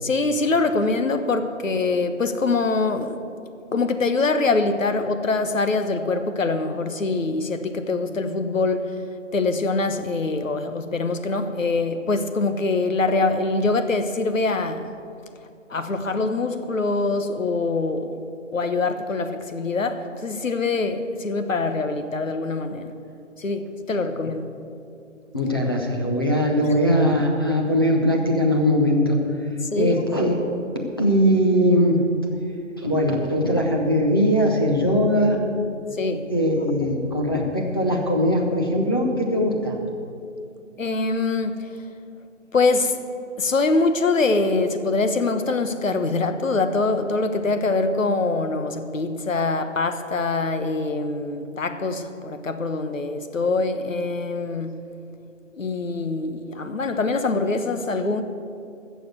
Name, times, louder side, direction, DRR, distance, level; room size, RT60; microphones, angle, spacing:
voice 1, 0.0-3.2 3.7-9.0 9.3-14.9 15.7-18.2 18.5-22.9 23.4-24.5 29.7-30.0 35.9-36.3 40.8-41.7 42.5-43.0 43.4-54.9 55.5-58.2, left 3 dB, 80° left, 1.2 m, -24 dB
voice 2, 25.3-29.2 29.8-30.4 31.0-32.0 32.8-35.4 36.3-39.8, equal, 20° left, 0.7 m, -20 dB
14.0 x 6.9 x 7.9 m
figure-of-eight pair, 165°, 39 cm